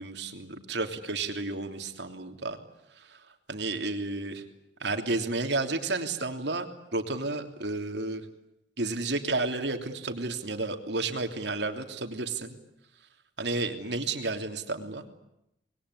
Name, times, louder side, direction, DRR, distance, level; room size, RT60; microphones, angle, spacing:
voice 1, 0.0-2.6 3.0-3.2 3.5-4.4 4.8-6.7 6.9-8.2 8.8-12.6 13.4-15.0, right 3 dB, 70° right, 6 dB, 3.1 m, -31 dB
26.0 x 21.5 x 9.8 m, 0.81 s
head